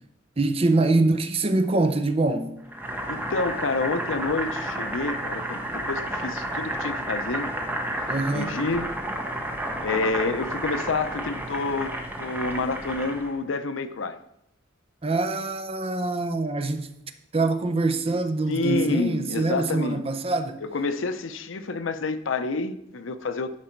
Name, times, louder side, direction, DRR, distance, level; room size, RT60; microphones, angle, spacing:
voice 1, 0.4-2.6 8.1-8.6 15.0-16.9 17.3-20.6, right 2 dB, 30° right, 0.6 m, -24 dB
Boiling, 2.7-13.4, right 1 dB, 10° right, 1.0 m, -31 dB
voice 2, 3.1-7.5 8.3-9.0 9.8-11.9 12.2-14.2 18.5-20.0 20.6-23.6, left 3 dB, 85° left, 0.6 m, -28 dB
10.5 x 5.2 x 4.5 m
head